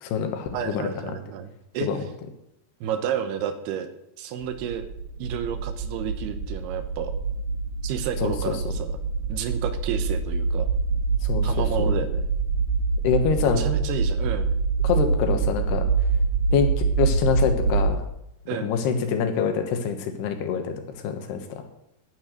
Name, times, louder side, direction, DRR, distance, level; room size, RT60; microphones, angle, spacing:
voice 1, 0.0-0.9 1.8-2.0 8.2-8.3 11.2-11.9 13.0-13.7 14.8-15.9 16.5-16.7 17.0-18.0 18.6-20.8 21.0-21.6, left 6 dB, 85° left, 6 dB, 3.4 m, -25 dB
voice 2, 0.5-1.9 2.8-3.9 4.2-4.8 5.2-7.1 7.8-9.0 9.3-10.7 11.4-12.3 13.6-14.5 18.5-18.7, right 9 dB, 85° right, 10 dB, 3.0 m, -31 dB
sound 1, 4.4-17.9, right 4 dB, 65° right, 3.2 m, -25 dB
11.0 x 9.2 x 6.5 m, 0.83 s
omnidirectional pair, 4.6 m